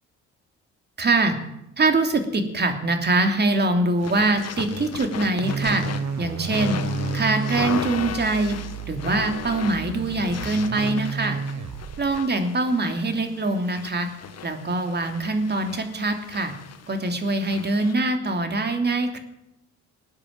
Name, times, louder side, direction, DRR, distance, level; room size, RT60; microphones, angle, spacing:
voice 1, 1.0-1.3 1.8-5.8 6.2-6.8 7.1-8.6 8.9-11.4 12.0-14.1 14.4-16.5 16.9-19.2, right 2 dB, 35° right, 6 dB, 2.8 m, -23 dB
sound 1, 4.0-17.9, left 7 dB, 55° left, 1.6 m, -36 dB
sound 2, 5.4-12.2, right 5 dB, 70° right, 1.5 m, -32 dB
19.5 x 9.7 x 7.6 m, 0.86 s
cardioid pair, 90°, 30 cm